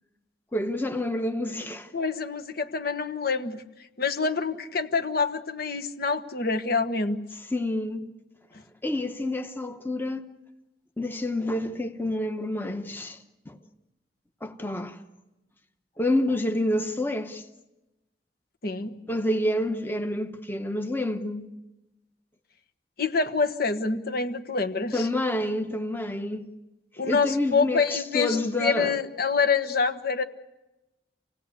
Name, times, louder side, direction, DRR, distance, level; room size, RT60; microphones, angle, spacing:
voice 1, 0.5-1.9 7.5-8.1 8.8-10.2 11.0-13.6 14.4-15.0 16.0-17.4 19.1-21.5 24.9-26.5 27.1-29.0, left 1 dB, 10° left, 1.0 m, -28 dB
voice 2, 1.9-3.6 4.0-7.2 18.6-18.9 23.0-25.1 27.0-30.2, left 4 dB, 60° left, 1.4 m, -26 dB
28.5 x 18.0 x 8.2 m
head